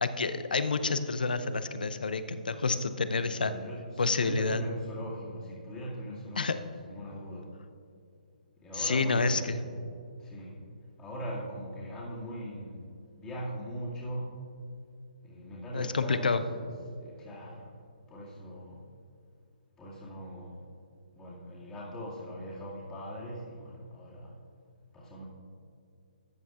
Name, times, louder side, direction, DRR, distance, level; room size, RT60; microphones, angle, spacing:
voice 1, 0.0-3.5 4.0-4.6 6.4-6.6 8.7-9.6 15.7-16.4, left 4 dB, 75° left, 11 dB, 0.6 m, -28 dB
voice 2, 3.2-6.5 6.8-7.6 8.6-9.8 10.2-10.6 11.0-14.4 15.2-16.7 17.0-17.8 18.1-18.9 19.8-20.7 21.2-24.3 24.9-25.3, equal, 15° left, -7 dB, 2.2 m, -41 dB
14.0 x 9.2 x 2.4 m, 2.5 s
figure-of-eight pair, 135°, 5 cm